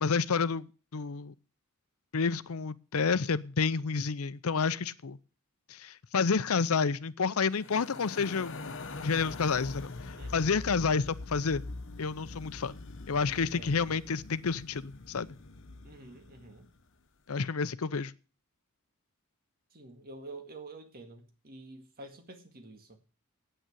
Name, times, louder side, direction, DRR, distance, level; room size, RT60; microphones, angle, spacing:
voice 1, 0.0-1.3 2.1-5.2 5.7-8.5 9.0-11.6 12.0-12.8 13.1-15.3 17.3-18.1, left 5 dB, 75° left, 0.6 m, -30 dB
sound 1, 7.5-16.8, left 3 dB, 60° left, 1.1 m, -44 dB
voice 2, 10.1-10.6 13.3-13.9 15.8-16.7 19.7-23.0, right 2 dB, 45° right, 2.0 m, -48 dB
9.1 x 8.9 x 8.3 m
head